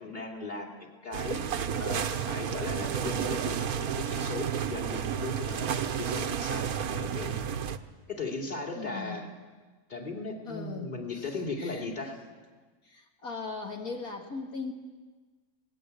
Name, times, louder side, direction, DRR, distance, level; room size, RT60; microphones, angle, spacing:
voice 1, 0.0-1.4 1.8-7.4 8.1-9.3 9.9-12.2, left 3 dB, 30° left, 1 dB, 2.9 m, -37 dB
sound 1, 1.1-7.8, right 8 dB, 75° right, 1.4 m, -31 dB
voice 2, 8.7-9.2 10.5-11.3 11.6-11.9 12.8-14.7, left 4 dB, 70° left, 1 dB, 2.5 m, -39 dB
26.0 x 19.0 x 8.3 m, 1.4 s
omnidirectional pair, 1.6 m